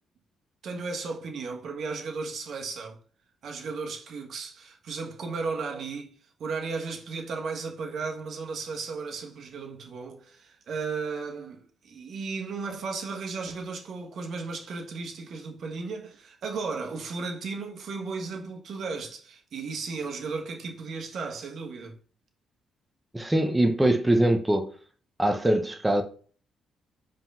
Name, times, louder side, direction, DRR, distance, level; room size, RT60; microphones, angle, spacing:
voice 1, 0.6-3.0 3.4-6.1 6.4-21.9, right 4 dB, 60° right, 1.4 m, -35 dB
voice 2, 23.1-24.7 25.2-26.0, right 1 dB, 10° right, 0.8 m, -23 dB
4.9 x 3.8 x 5.5 m
cardioid pair, 90°, 0 cm